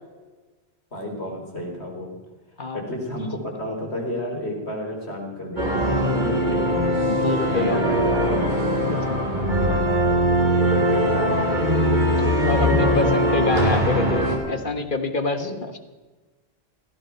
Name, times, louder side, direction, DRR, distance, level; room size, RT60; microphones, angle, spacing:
voice 1, 0.9-2.1 2.7-6.9 7.5-8.6 9.2-10.3 10.7-11.5 12.4-13.2 14.4-14.7 15.3-15.5, left 1 dB, 80° left, 0 dB, 4.7 m, -32 dB
sound 1, 5.6-14.4, equal, 45° right, 3.2 m, -21 dB
voice 2, 7.1-7.8 8.7-8.8 9.1-9.2 12.2-15.8, left 3 dB, 50° left, 8 dB, 1.6 m, -27 dB
16.5 x 14.0 x 5.9 m, 1.3 s
omnidirectional pair, 1.1 m